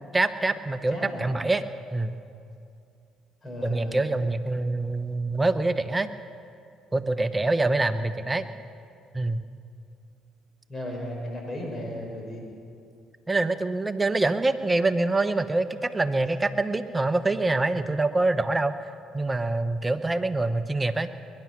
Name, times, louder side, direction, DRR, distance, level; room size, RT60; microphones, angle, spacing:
voice 1, 0.1-1.6 1.9-2.1 3.6-6.1 6.9-8.5 9.1-9.4 13.3-21.1, right 2 dB, 20° right, 10 dB, 1.0 m, -25 dB
voice 2, 0.9-1.3 3.4-4.1 8.2-8.3 10.7-12.4, left 1 dB, 35° left, 0 dB, 5.4 m, -35 dB
22.0 x 11.0 x 6.1 m, 2.5 s
supercardioid pair, 65°, 0 cm